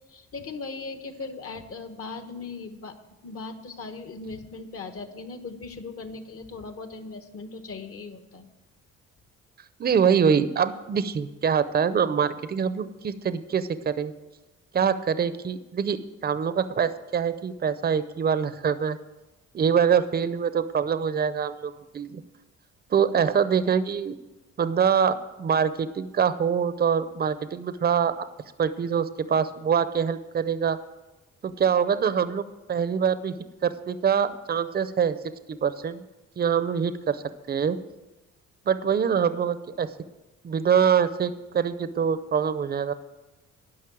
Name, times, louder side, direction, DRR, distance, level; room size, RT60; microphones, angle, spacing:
voice 1, 0.1-3.0 3.2-8.5, left 4 dB, 50° left, 8 dB, 1.3 m, -38 dB
voice 2, 9.8-14.1 14.7-16.0 16.2-19.0 19.5-22.2 22.9-24.1 24.6-28.1 28.6-30.8 31.4-32.4 32.7-33.3 33.6-35.2 35.5-36.0 36.4-37.2 37.5-37.8 38.7-39.9 40.4-42.9, right 7 dB, 30° right, 13 dB, 0.6 m, -24 dB
11.5 x 5.5 x 8.5 m, 1.1 s
cardioid pair, 90°, 30 cm